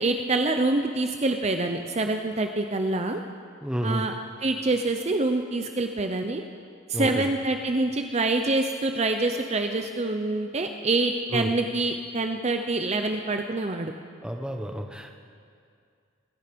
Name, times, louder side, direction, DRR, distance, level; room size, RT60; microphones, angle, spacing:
voice 1, 0.0-3.2 3.8-4.1 4.4-6.4 6.9-13.9, right 2 dB, 30° right, 6 dB, 0.6 m, -26 dB
voice 2, 3.6-4.0 6.9-7.2 11.3-11.5 14.2-15.1, equal, 5° right, 4 dB, 0.9 m, -30 dB
24.5 x 10.5 x 5.2 m, 2.3 s
head